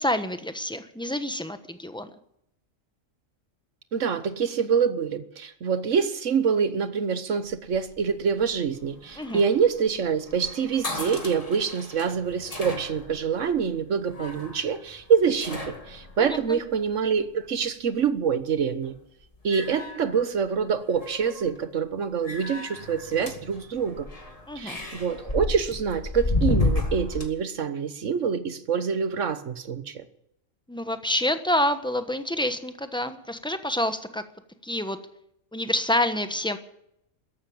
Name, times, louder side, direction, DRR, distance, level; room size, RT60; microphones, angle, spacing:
voice 1, 0.0-2.1 9.2-9.4 16.2-16.6 24.5-24.8 30.7-34.2 34.6-35.0 35.5-36.6, left 1 dB, 5° left, 9 dB, 1.0 m, -28 dB
voice 2, 3.9-18.9 19.4-24.1 24.5-30.0, right 6 dB, 70° right, 12 dB, 1.5 m, -26 dB
sound 1, 7.5-17.3 18.6-19.0 19.3-20.6 20.9-21.6 22.2-27.3, left 2 dB, 30° left, 2.2 m, -33 dB
13.5 x 11.5 x 8.8 m, 0.75 s
omnidirectional pair, 1.3 m